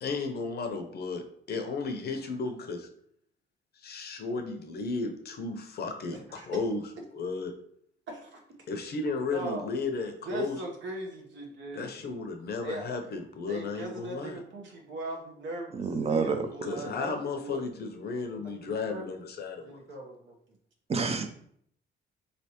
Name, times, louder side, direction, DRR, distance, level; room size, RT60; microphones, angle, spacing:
voice 1, 0.0-2.9 3.8-6.8 7.1-7.5 8.7-10.6 11.7-14.4 16.6-19.8, left 4 dB, 55° left, 5 dB, 0.7 m, -34 dB
voice 2, 6.1-6.6 8.1-8.4 9.3-9.7 10.2-11.9 12.6-12.9 13.5-17.7 18.4-19.0 19.6-20.4, right 1 dB, 70° right, 1 dB, 1.1 m, -39 dB
voice 3, 15.7-16.5 20.9-21.3, right 4 dB, 30° right, 7 dB, 0.6 m, -28 dB
4.1 x 3.3 x 2.9 m, 0.67 s
cardioid pair, 90°, 20 cm